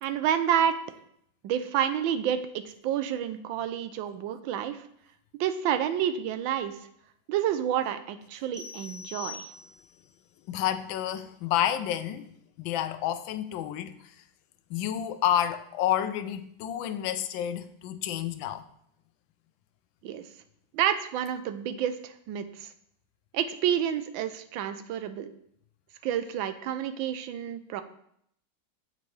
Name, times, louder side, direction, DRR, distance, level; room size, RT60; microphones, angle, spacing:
voice 1, 0.0-0.8 1.4-4.9 5.4-6.8 7.3-9.5 20.0-20.3 20.7-22.7 23.3-25.3 26.0-27.8, right 9 dB, 85° right, 1.4 m, -29 dB
sound 1, 8.5-10.1, left 5 dB, 5° left, 1.8 m, -43 dB
voice 2, 10.5-12.3 12.6-14.1 14.7-18.6, left 11 dB, 85° left, 1.3 m, -29 dB
7.8 x 7.2 x 3.2 m
omnidirectional pair, 2.1 m